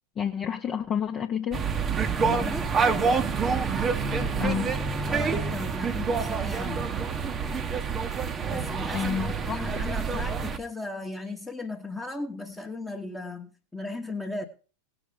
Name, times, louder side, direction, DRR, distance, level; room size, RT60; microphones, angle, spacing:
voice 1, 0.2-1.6 4.3-4.7 8.9-9.7, left 8 dB, 25° left, 1.0 m, -29 dB
sound 1, 1.5-10.6, right 5 dB, 20° right, 1.1 m, -27 dB
voice 2, 2.1-2.8 5.1-6.9 8.5-9.1 9.5-14.4, left 3 dB, 5° left, 1.3 m, -36 dB
18.5 x 6.2 x 5.3 m
figure-of-eight pair, 90°, 0 cm